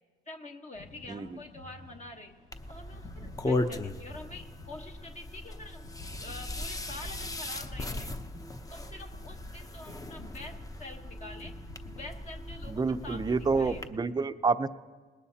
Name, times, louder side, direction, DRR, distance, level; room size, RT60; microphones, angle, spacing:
voice 1, 0.3-2.3 2.7-5.9 6.2-8.1 8.7-11.5 11.9-13.8, left 2 dB, 35° left, 2 dB, 1.2 m, -46 dB
sound 1, 0.7-13.9, left 2 dB, 85° left, 3.2 m, -51 dB
sound 2, 2.5-13.9, left 2 dB, 15° left, 0.8 m, -38 dB
voice 2, 12.7-14.7, right 4 dB, 20° right, 10 dB, 0.6 m, -28 dB
20.5 x 18.5 x 2.8 m, 1.4 s
cardioid pair, 90°, 20 cm